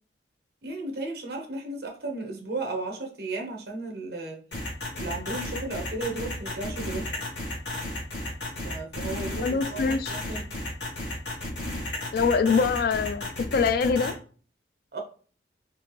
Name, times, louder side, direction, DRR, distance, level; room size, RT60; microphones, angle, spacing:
voice 1, 0.6-4.4 4.9-7.2 8.6-10.4 14.9-15.0, right 2 dB, 60° right, 1.0 m, -34 dB
sound 1, 4.5-14.1, left 1 dB, 85° left, 1.5 m, -33 dB
voice 2, 9.4-10.2 12.1-14.2, left 5 dB, 55° left, 0.3 m, -24 dB
4.3 x 2.7 x 3.1 m
head